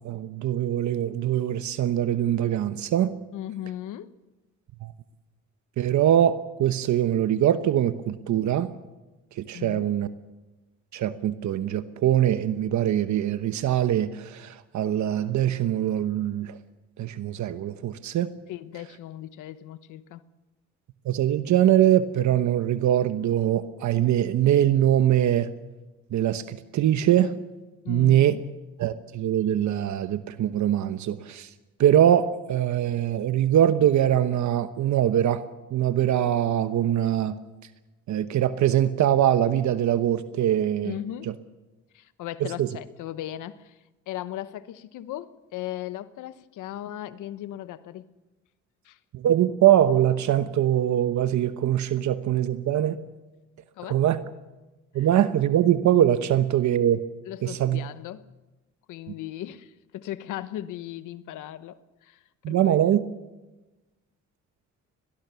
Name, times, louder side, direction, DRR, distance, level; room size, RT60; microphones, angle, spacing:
voice 1, 0.0-3.1 4.8-4.9 5.8-8.7 9.4-10.1 10.9-16.6 17.0-18.3 21.0-25.5 26.1-27.3 27.9-28.3 28.8-31.5 31.8-35.4 35.7-37.3 38.1-40.9 42.4-42.7 49.1-53.0 53.9-54.2 54.9-57.0 57.4-57.8 62.4-63.0, right 11 dB, 70° right, 11 dB, 1.0 m, -22 dB
voice 2, 3.3-4.1 9.5-9.9 18.5-20.2 27.8-28.4 40.8-41.3 41.9-43.8 44.1-48.1 48.8-49.0 53.8-54.0 55.0-55.1 57.3-58.2 58.9-62.2 62.5-62.8, left 13 dB, 85° left, 14 dB, 1.1 m, -37 dB
22.5 x 18.5 x 7.0 m, 1.1 s
cardioid pair, 90°, 30 cm